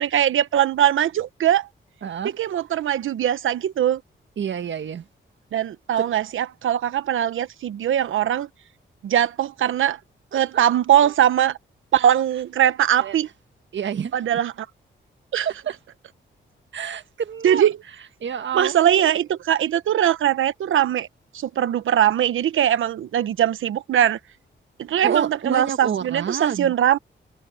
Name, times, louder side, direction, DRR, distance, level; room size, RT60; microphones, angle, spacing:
voice 1, 0.0-1.7 2.4-4.0 5.5-8.5 9.0-10.0 10.3-11.6 11.9-13.3 14.1-14.5 15.3-15.5 17.4-17.7 18.5-21.1 21.3-24.2 24.8-27.0, right 10 dB, 90° right, 1.1 m, -21 dB
voice 2, 2.0-2.3 4.4-5.1 6.0-6.1 10.3-10.6 11.0-11.1 13.0-13.2 13.7-14.3 15.4-15.8 16.7-17.7 18.2-19.0 25.0-26.7, right 8 dB, 65° right, 1.6 m, -28 dB
cardioid pair, 70°, 20 cm